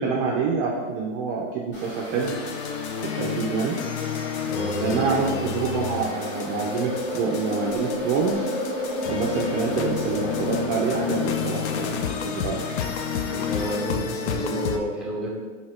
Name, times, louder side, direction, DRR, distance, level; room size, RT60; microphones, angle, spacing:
voice 1, 0.0-2.3 3.0-3.7 4.8-8.5 9.1-12.6, right 5 dB, 35° right, -2 dB, 0.4 m, -26 dB
sound 1, 1.7-13.8, left 1 dB, 30° left, 1.2 m, -41 dB
sound 2, 2.2-14.8, left 7 dB, 65° left, 0.5 m, -31 dB
voice 2, 4.4-5.4 13.3-15.4, right 1 dB, ahead, -4 dB, 0.7 m, -30 dB
sound 3, 5.1-12.7, left 1 dB, 80° left, 1.1 m, -32 dB
2.9 x 2.8 x 4.2 m, 1.4 s
hypercardioid pair, 125°, 36 cm